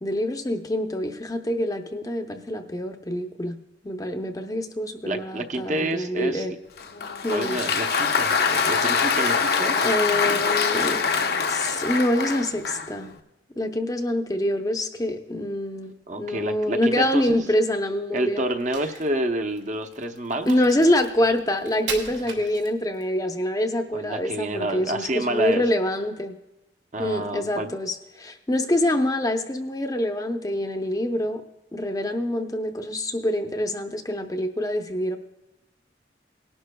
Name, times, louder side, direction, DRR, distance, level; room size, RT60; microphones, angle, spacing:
voice 1, 0.0-3.6 3.8-6.5 7.2-7.6 9.8-11.0 11.5-13.1 13.6-18.5 20.5-26.4 27.0-31.4 31.7-35.2, left 1 dB, 20° left, 5 dB, 0.6 m, -25 dB
voice 2, 5.0-6.5 7.3-9.9 16.1-17.4 18.1-20.6 23.9-25.6 26.9-27.7, right 1 dB, 40° right, 6 dB, 0.7 m, -29 dB
Applause, 6.8-13.0, left 5 dB, 55° left, 0.7 m, -24 dB
Crack, 18.5-23.1, right 5 dB, 70° right, 1.9 m, -38 dB
19.0 x 11.5 x 2.2 m, 0.97 s
head